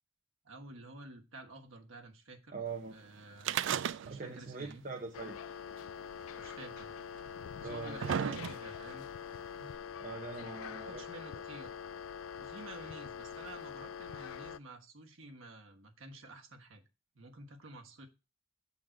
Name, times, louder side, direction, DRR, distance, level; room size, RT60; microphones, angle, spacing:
voice 1, 0.4-2.5 2.9-3.6 4.0-4.8 6.3-7.0 7.6-9.1 10.6-11.7 12.4-16.8 17.1-18.1, right 2 dB, 85° right, 3 dB, 1.3 m, -51 dB
voice 2, 2.5-2.9 4.1-5.5 7.6-8.0 9.6-9.7 10.0-11.0 11.3-11.4, right 4 dB, 40° right, 3 dB, 0.8 m, -42 dB
sound 1, 3.4-4.4 4.7-4.8 5.8-5.9 6.8-6.9 7.5-8.9 9.7-9.8, right 8 dB, 70° right, 0.3 m, -34 dB
sound 2, 5.1-14.6, left 7 dB, 85° left, 0.3 m, -44 dB
7.7 x 3.9 x 6.2 m, 0.30 s
head